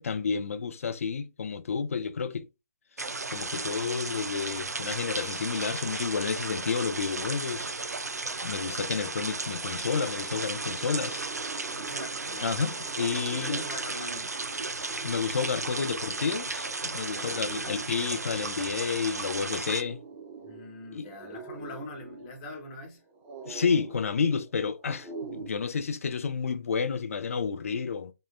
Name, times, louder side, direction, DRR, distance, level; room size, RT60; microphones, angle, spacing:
voice 1, 0.0-2.5 3.3-7.7 8.4-11.2 12.4-13.6 15.0-20.0 20.9-21.1 23.5-28.1, left 5 dB, 60° left, 0.5 m, -30 dB
sound 1, 3.0-19.8, right 3 dB, 90° right, 0.4 m, -35 dB
sound 2, 9.4-25.5, right 4 dB, 15° right, 0.4 m, -46 dB
voice 2, 11.7-12.6 13.3-14.3 17.1-17.9 20.4-23.0, left 2 dB, 30° left, 1.0 m, -42 dB
3.6 x 2.1 x 2.4 m
figure-of-eight pair, 140°, 9 cm